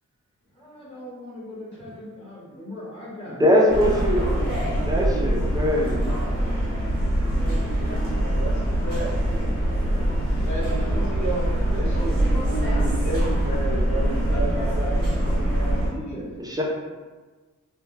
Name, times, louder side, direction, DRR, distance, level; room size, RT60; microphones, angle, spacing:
voice 1, 0.5-6.4 7.4-8.3 9.2-11.2 15.3-16.4, equal, 20° left, -10 dB, 1.0 m, -40 dB
voice 2, 3.4-4.4 4.9-6.1 16.5-16.6, equal, 15° right, -2 dB, 0.3 m, -21 dB
sound 1, 3.7-15.9, right 1 dB, 45° right, 0.8 m, -23 dB
voice 3, 8.1-9.2 10.5-16.1, right 1 dB, 65° left, -7 dB, 0.9 m, -32 dB
2.2 x 2.1 x 3.1 m, 1.3 s
wide cardioid pair, 165°, 31 cm